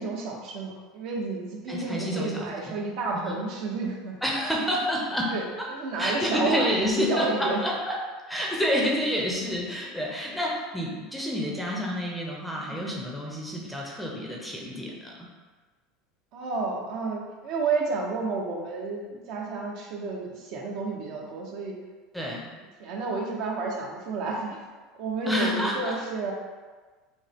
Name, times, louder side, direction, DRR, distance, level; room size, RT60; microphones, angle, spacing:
voice 1, 0.0-4.2 5.3-7.6 12.6-12.9 16.3-21.7 22.8-24.6 24.9-26.3, right 3 dB, 55° right, -1 dB, 0.9 m, -31 dB
voice 2, 1.7-2.7 3.1-3.4 4.2-5.3 5.6-5.7 6.0-8.0 8.3-15.3 22.1-22.5 25.3-26.0, equal, ahead, -3 dB, 0.6 m, -29 dB
6.1 x 2.1 x 3.5 m, 1.4 s
supercardioid pair, 140°, 0 cm